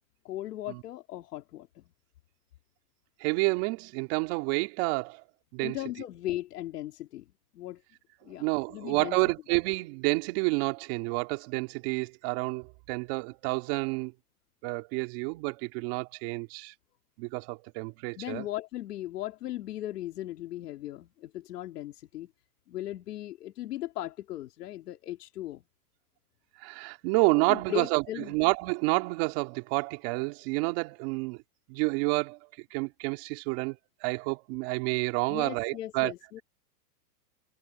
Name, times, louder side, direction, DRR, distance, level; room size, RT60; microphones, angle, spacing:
voice 1, 0.2-1.8 5.6-7.3 7.5-7.8 8.2-9.2 18.2-22.3 22.7-25.6 27.5-28.4 35.3-36.4, left 14 dB, 70° left, 2.4 m, -37 dB
voice 2, 3.2-5.2 5.5-5.8 8.4-14.1 14.6-16.7 17.2-18.5 26.6-28.0 28.3-31.4 31.7-32.4 32.7-33.8 34.0-36.1, right 27 dB, 40° right, 3.0 m, -29 dB
supercardioid pair, 155°, 49 cm